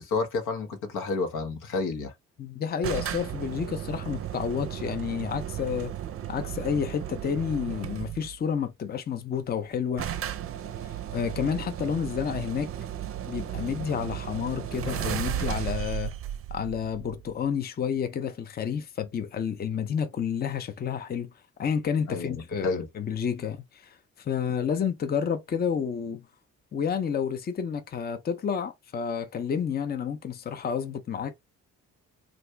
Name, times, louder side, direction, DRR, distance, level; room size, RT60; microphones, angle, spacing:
voice 1, 0.0-2.1 22.1-22.9, left 3 dB, 90° left, 1.0 m, -30 dB
voice 2, 2.4-5.9 6.3-10.1 11.1-12.7 13.3-16.1 16.5-21.3 21.6-26.2 26.7-31.4, left 7 dB, 30° left, 0.6 m, -30 dB
sound 1, 2.8-8.4 9.4-9.5 9.6-9.7 10.0-17.5, right 11 dB, 50° right, 0.5 m, -35 dB
2.7 x 2.5 x 3.3 m
cardioid pair, 90°, 30 cm